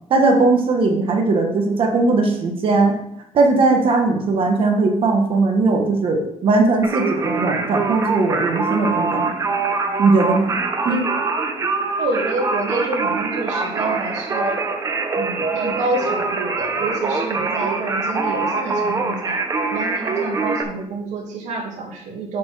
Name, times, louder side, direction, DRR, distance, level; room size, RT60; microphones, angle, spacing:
voice 1, 0.1-2.9 3.3-9.3 10.0-10.6 10.8-11.0, right 3 dB, 50° right, 3 dB, 1.4 m, -18 dB
Singing, 6.8-20.6, right 3 dB, 25° right, 0.8 m, -24 dB
voice 2, 12.0-14.6 15.1-19.4 19.7-22.4, right 3 dB, 90° right, 0 dB, 2.2 m, -28 dB
7.1 x 4.5 x 6.4 m, 0.75 s
cardioid pair, 155°, 12 cm